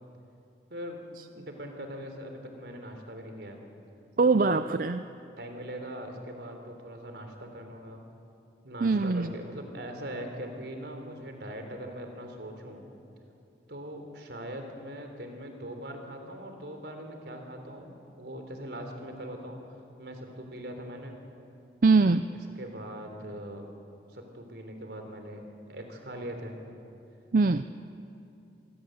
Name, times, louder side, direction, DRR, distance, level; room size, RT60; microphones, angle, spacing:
voice 1, 0.7-1.0 1.3-3.6 4.2-4.6 5.4-8.0 8.6-12.9 13.7-19.6 20.0-21.1 22.6-23.6 24.1-26.6, equal, 75° right, 5 dB, 3.7 m, -41 dB
voice 2, 4.2-5.1 8.8-9.3 21.8-22.3 27.3-27.6, right 3 dB, 50° right, 11 dB, 0.5 m, -22 dB
27.0 x 20.0 x 7.9 m, 2.7 s
head